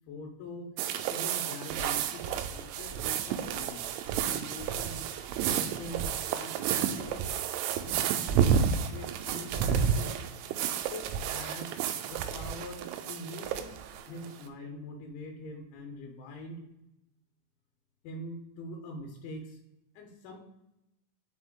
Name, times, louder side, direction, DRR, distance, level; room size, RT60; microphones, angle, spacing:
voice 1, 0.1-0.7 1.1-3.9 4.3-5.1 5.4-7.3 7.9-8.5 8.9-10.1 10.9-11.7 12.1-16.6 18.0-19.6 19.9-20.4, left 1 dB, 85° left, 1 dB, 3.3 m, -44 dB
sound 1, 0.8-14.4, right 8 dB, 85° right, 2.7 m, -31 dB
6.0 x 4.6 x 3.6 m, 0.89 s
omnidirectional pair, 5.4 m